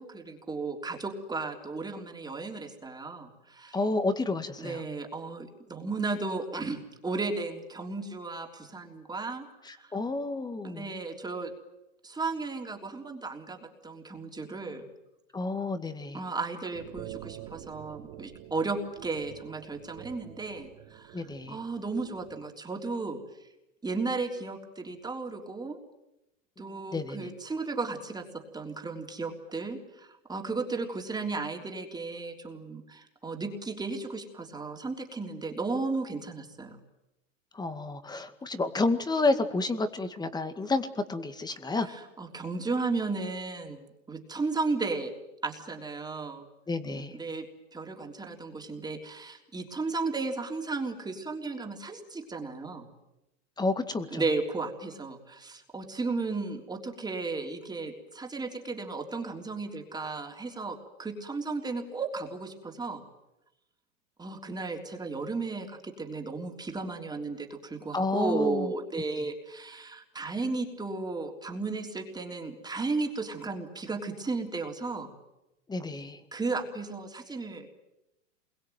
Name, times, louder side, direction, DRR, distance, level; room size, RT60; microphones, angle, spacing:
voice 1, 0.0-3.8 4.6-9.5 9.7-9.9 10.6-11.5 12.0-13.6 13.8-14.8 16.1-23.5 23.8-25.8 26.6-36.8 41.8-45.1 45.4-46.5 47.1-47.5 47.7-52.9 54.1-63.0 64.2-75.1 76.3-77.8, right 3 dB, 10° right, 2 dB, 3.5 m, -34 dB
voice 2, 3.7-4.8 9.6-10.9 15.3-16.2 21.1-21.6 26.6-26.7 26.9-27.3 37.5-41.9 46.7-47.1 53.6-54.2 67.9-68.7 69.2-69.3 75.7-76.2, left 3 dB, 10° left, 10 dB, 2.2 m, -30 dB
sound 1, 16.7-22.4, right 15 dB, 55° right, 3.6 m, -47 dB
27.5 x 22.5 x 9.3 m, 0.92 s
hypercardioid pair, 130°, 39 cm